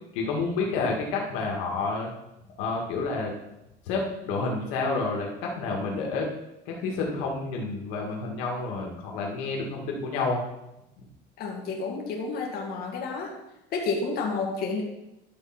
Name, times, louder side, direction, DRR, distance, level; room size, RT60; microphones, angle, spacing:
voice 1, 0.1-2.1 2.6-3.3 3.9-6.3 6.7-10.4, left 3 dB, 90° left, -1 dB, 2.0 m, -29 dB
voice 2, 11.4-13.3 13.7-14.8, left 4 dB, 50° left, -1 dB, 2.0 m, -30 dB
11.5 x 4.4 x 6.0 m, 0.90 s
cardioid pair, 150°, 20 cm